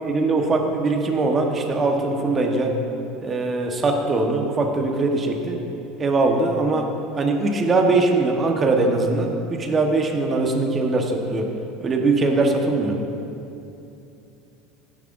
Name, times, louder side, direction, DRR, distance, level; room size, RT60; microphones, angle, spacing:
voice 1, 0.0-2.8 3.2-5.6 6.0-6.9 7.1-11.5 11.8-13.0, right 3 dB, 25° right, 2 dB, 1.2 m, -21 dB
15.5 x 10.0 x 2.6 m, 2.8 s
supercardioid pair, 130°, 0 cm